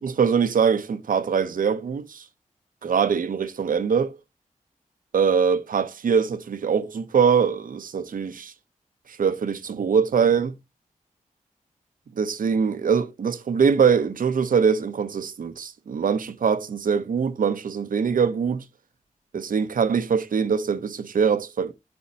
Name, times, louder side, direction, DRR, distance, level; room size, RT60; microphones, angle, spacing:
voice 1, 0.0-2.2 2.8-4.2 5.1-8.5 9.1-10.5 12.2-18.6 19.3-21.7, right 6 dB, 80° right, 0.7 m, -23 dB
11.0 x 4.2 x 2.8 m
cardioid pair, 60°, 14 cm